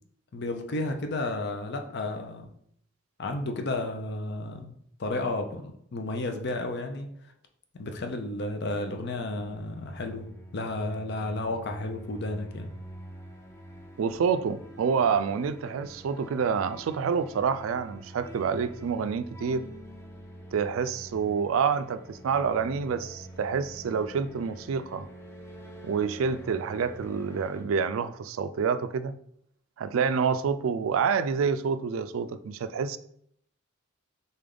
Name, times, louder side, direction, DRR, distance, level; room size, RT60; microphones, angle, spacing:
voice 1, 0.3-2.5 3.2-7.1 7.7-10.3 10.5-12.7, left 2 dB, 55° left, 0.6 m, -32 dB
sound 1, 9.1-27.6, right 1 dB, 15° left, 0.6 m, -46 dB
voice 2, 14.0-19.6 20.5-25.1 25.8-29.2 29.8-33.0, right 6 dB, 85° right, 0.3 m, -28 dB
4.0 x 3.4 x 3.8 m
head